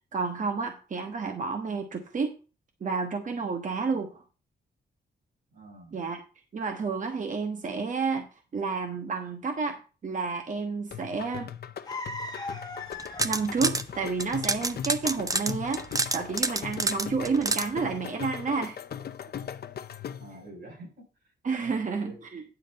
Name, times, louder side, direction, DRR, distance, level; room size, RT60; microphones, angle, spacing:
voice 1, 0.1-2.3 2.8-4.2 5.9-6.2 6.5-8.3 8.5-9.8 10.0-11.5 13.2-18.8 21.4-22.4, right 4 dB, 45° right, 4 dB, 1.2 m, -30 dB
voice 2, 5.5-6.0 20.2-22.3, right 2 dB, 90° right, 0 dB, 5.9 m, -48 dB
sound 1, 10.9-20.4, left 8 dB, 60° left, 0.7 m, -39 dB
sound 2, 11.9-16.8, left 2 dB, 20° left, 1.5 m, -39 dB
sound 3, 12.9-13.8 14.2-17.7, right 3 dB, 20° right, 0.7 m, -28 dB
10.0 x 4.0 x 7.4 m, 0.34 s
wide cardioid pair, 130°, 18 cm